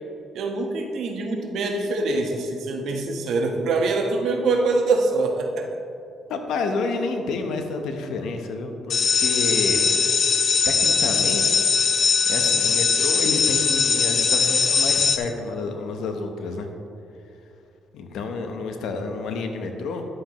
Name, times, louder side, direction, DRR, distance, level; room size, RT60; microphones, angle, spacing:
voice 1, 0.3-5.8, right 3 dB, 75° right, 2 dB, 1.2 m, -24 dB
voice 2, 6.3-10.4 10.6-11.7 12.3-16.7 17.9-20.1, left 3 dB, 80° left, 5 dB, 1.0 m, -29 dB
sound 1, 8.9-15.2, left 5 dB, 55° left, 0.7 m, -20 dB
11.0 x 7.7 x 3.1 m, 2.6 s
cardioid pair, 90°, 0 cm